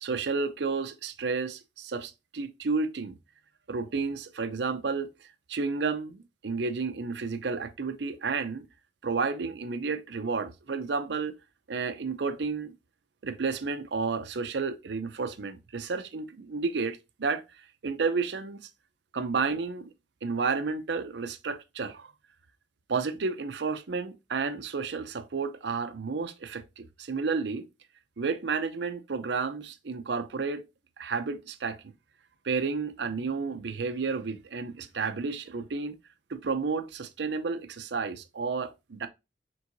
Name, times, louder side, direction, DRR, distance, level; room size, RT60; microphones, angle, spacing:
voice 1, 0.0-3.2 3.7-5.1 5.5-8.6 9.0-11.4 11.7-12.7 13.2-17.4 17.8-18.6 19.1-19.9 20.2-22.1 22.9-27.7 28.2-30.6 31.0-31.9 32.4-36.0 36.3-39.1, right 4 dB, 65° right, 0.6 m, -31 dB
4.6 x 3.6 x 2.6 m
head